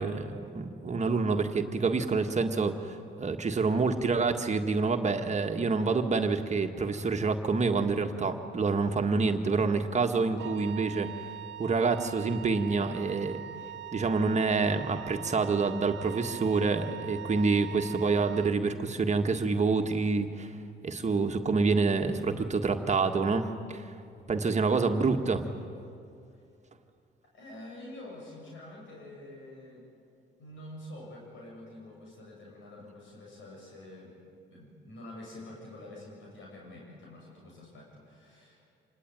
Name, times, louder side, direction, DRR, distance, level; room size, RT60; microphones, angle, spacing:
voice 1, 0.0-11.1 11.6-13.4 13.9-20.5 20.8-23.9 24.3-25.4, right 4 dB, 35° right, 4 dB, 1.7 m, -27 dB
Wind instrument woodwind instrument, 10.4-18.6, right 11 dB, 70° right, 0.9 m, -42 dB
voice 2, 27.3-29.9 30.4-34.2 34.5-38.7, left 1 dB, 75° left, -2 dB, 7.5 m, -47 dB
26.5 x 20.0 x 9.4 m, 2.5 s
cardioid pair, 90°, 20 cm